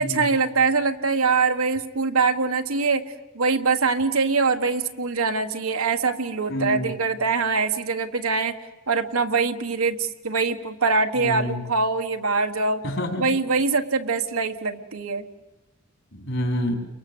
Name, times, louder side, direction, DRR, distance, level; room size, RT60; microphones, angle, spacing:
voice 1, 0.0-3.0 3.3-8.5 8.9-12.8 13.2-15.2, right 4 dB, 75° right, 6 dB, 1.5 m, -23 dB
voice 2, 6.5-6.9 11.2-11.6 12.8-13.3 16.1-16.7, equal, 60° left, 3 dB, 4.8 m, -27 dB
30.0 x 23.0 x 8.0 m, 1.0 s
head